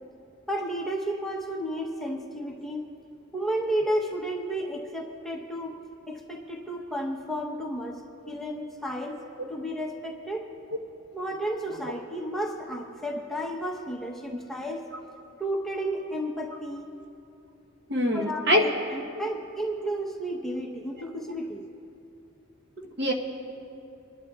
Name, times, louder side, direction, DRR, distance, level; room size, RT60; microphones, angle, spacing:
voice 1, 0.5-2.8 3.3-5.8 6.1-8.0 8.3-9.2 9.5-10.5 11.1-14.8 15.4-16.9 18.1-21.6, right 1 dB, ahead, -1 dB, 0.9 m, -32 dB
voice 2, 17.9-18.6 22.8-23.1, equal, 55° right, 1 dB, 1.1 m, -24 dB
27.5 x 11.5 x 2.4 m, 2.8 s
head